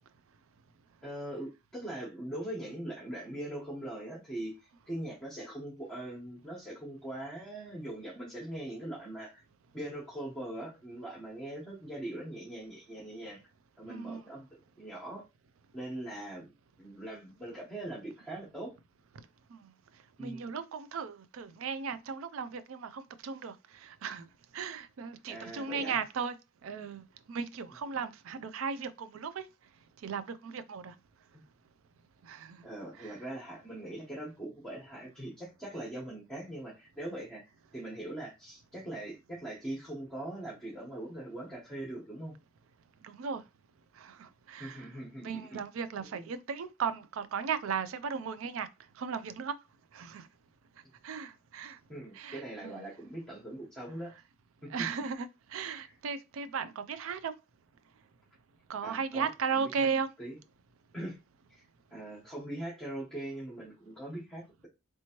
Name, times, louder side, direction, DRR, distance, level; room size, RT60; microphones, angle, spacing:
voice 1, 1.0-4.5 4.9-9.4 9.7-13.4 13.8-14.5 14.8-15.2 15.7-16.5 16.8-18.7 20.2-20.4 25.3-26.0 27.9-28.1 31.3-31.4 32.6-42.3 44.6-45.6 46.1-46.3 51.9-54.1 54.6-54.7 55.8-55.9 58.8-59.9 60.2-60.4 60.9-61.2 61.5-61.6 61.9-64.7, right 1 dB, 5° left, 1.0 m, -41 dB
voice 2, 13.9-14.3 19.5-19.7 20.2-24.3 24.5-26.4 26.6-29.4 30.0-30.9 32.2-32.6 33.0-33.2 43.0-43.4 44.0-44.9 45.2-48.7 49.0-49.5 49.9-50.3 51.0-51.8 52.1-52.9 54.7-57.3 58.7-60.1, right 6 dB, 75° right, 0.4 m, -36 dB
3.3 x 2.9 x 2.9 m
head